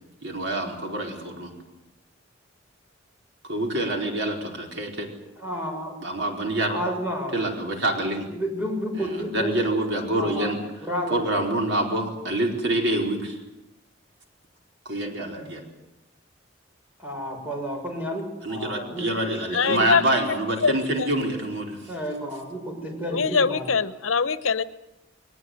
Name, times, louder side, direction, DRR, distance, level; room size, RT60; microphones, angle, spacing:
voice 1, 0.2-1.5 3.5-5.1 6.0-6.8 7.3-8.3 9.0-10.6 11.1-13.4 14.8-15.6 18.4-21.8, right 1 dB, 65° right, 2 dB, 4.7 m, -26 dB
voice 2, 5.4-5.9 6.7-7.3 8.4-9.5 10.2-10.5 10.8-11.2 17.0-19.0 19.4-19.9 21.9-23.7, equal, 10° right, 1 dB, 6.6 m, -31 dB
voice 3, 19.5-20.0 20.6-21.1 23.1-24.6, left 5 dB, 90° left, 14 dB, 1.0 m, -23 dB
21.5 x 20.0 x 9.5 m, 0.94 s
head